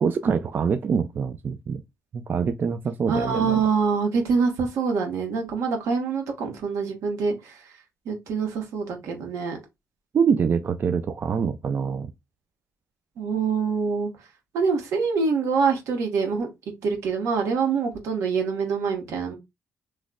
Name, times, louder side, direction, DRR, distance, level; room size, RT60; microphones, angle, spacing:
voice 1, 0.0-1.8 2.1-3.6 10.1-12.1, right 6 dB, 40° right, 0.3 m, -25 dB
voice 2, 3.1-7.6 8.1-9.6 13.2-14.1 14.5-16.5 16.8-19.3, right 5 dB, 80° right, 1.1 m, -25 dB
3.1 x 2.1 x 3.7 m
cardioid pair, 120°, 5 cm